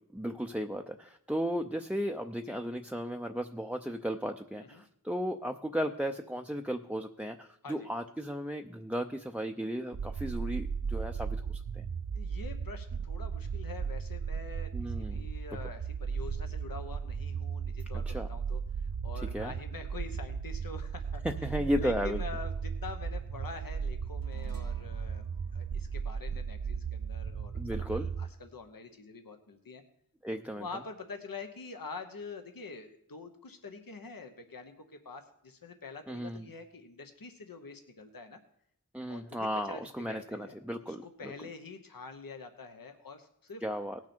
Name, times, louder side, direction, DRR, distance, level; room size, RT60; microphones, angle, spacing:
voice 1, 0.1-11.8 14.7-15.2 18.1-18.3 19.3-19.5 21.2-22.2 27.5-28.1 30.2-30.7 36.1-36.5 38.9-41.3 43.6-44.0, equal, 5° right, 5 dB, 0.5 m, -35 dB
sound 1, 9.9-28.3, right 6 dB, 50° right, 0.5 m, -36 dB
voice 2, 12.1-21.2 21.8-25.3 25.5-29.8 30.6-38.4 39.1-40.6 40.8-43.6, left 4 dB, 75° left, 7 dB, 1.0 m, -46 dB
sound 2, 24.2-28.9, right 6 dB, 75° right, 0.9 m, -59 dB
18.0 x 6.1 x 4.4 m, 0.75 s
wide cardioid pair, 50°, 35 cm